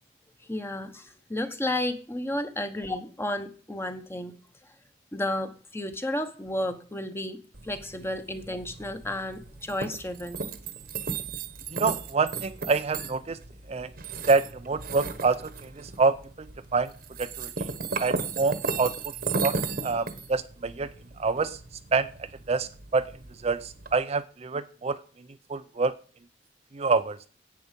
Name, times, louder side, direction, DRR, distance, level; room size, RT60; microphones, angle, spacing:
voice 1, 0.4-4.3 5.1-10.4, left 1 dB, 15° left, 8 dB, 1.1 m, -32 dB
sound 1, 7.5-24.0, right 4 dB, 50° right, 1.2 m, -36 dB
voice 2, 11.7-13.4 13.7-13.9 14.3-15.4 15.8-16.2 16.7-16.9 17.2-17.5 18.0-18.9 19.4-19.5 19.8-20.9 21.2-21.6 21.9-22.1 22.5-23.1 23.4-25.0 25.5-25.9 26.7-27.2, right 4 dB, 35° right, 10 dB, 0.5 m, -26 dB
10.5 x 8.5 x 5.2 m, 0.41 s
head